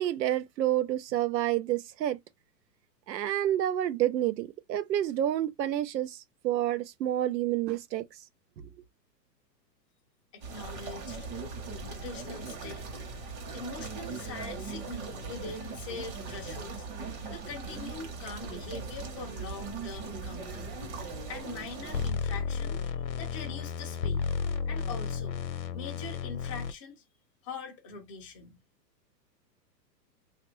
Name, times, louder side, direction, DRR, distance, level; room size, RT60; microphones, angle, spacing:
voice 1, 0.0-2.2 3.1-8.2, right 12 dB, 80° right, 0.7 m, -29 dB
voice 2, 10.3-11.3 11.9-12.9 13.5-16.9 17.3-20.7 21.3-24.3 24.7-25.4 25.7-27.0 27.4-28.6, left 4 dB, 20° left, 0.4 m, -43 dB
sound 1, 10.4-22.1, right 4 dB, 35° right, 1.0 m, -39 dB
sound 2, 21.9-26.7, left 6 dB, 75° left, 0.8 m, -32 dB
2.9 x 2.4 x 3.1 m
hypercardioid pair, 150°, 50 cm